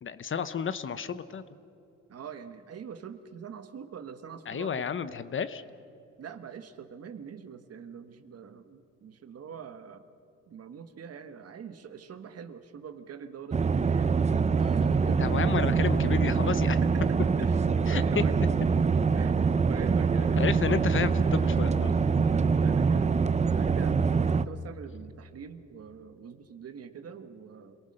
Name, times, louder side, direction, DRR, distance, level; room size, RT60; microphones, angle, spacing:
voice 1, 0.0-1.4 4.5-5.6 15.0-16.8 17.9-18.2 20.4-22.1, left 7 dB, 40° left, 13 dB, 0.9 m, -31 dB
voice 2, 2.1-4.9 6.2-10.0 10.5-14.1 14.5-15.5 16.7-18.4 19.1-20.6 22.1-23.2 23.5-27.8, right 7 dB, 55° right, 9 dB, 1.4 m, -44 dB
sound 1, 13.5-24.4, right 5 dB, 25° right, 0.6 m, -24 dB
27.0 x 18.5 x 6.6 m, 2.7 s
cardioid pair, 90°, 30 cm